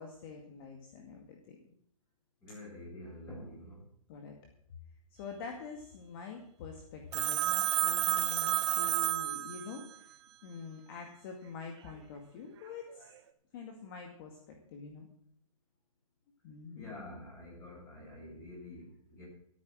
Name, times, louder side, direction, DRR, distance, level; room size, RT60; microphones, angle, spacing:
voice 1, 0.0-1.6 4.1-4.4 5.1-10.2 10.4-13.1 13.5-15.1 16.4-16.9, left 5 dB, 40° left, 2 dB, 2.1 m, -46 dB
voice 2, 2.4-3.9 16.8-19.3, left 1 dB, 15° left, -4 dB, 7.4 m, -47 dB
Telephone, 7.1-10.0, right 12 dB, 50° right, 1.3 m, -30 dB
14.0 x 9.1 x 6.3 m, 0.71 s
hypercardioid pair, 150°, 18 cm